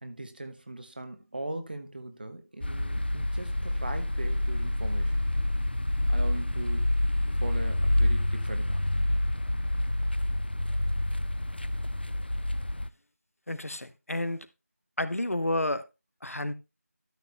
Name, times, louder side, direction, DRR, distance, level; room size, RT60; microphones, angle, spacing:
voice 1, 0.0-5.2 6.1-6.9 7.2-8.8, right 1 dB, 35° right, 1.2 m, -39 dB
sound 1, 2.6-12.9, left 1 dB, 40° left, 0.4 m, -28 dB
voice 2, 13.5-14.5 15.0-15.8 16.2-16.5, left 1 dB, 60° left, 0.9 m, -30 dB
12.5 x 6.3 x 3.2 m
figure-of-eight pair, 170°, 9 cm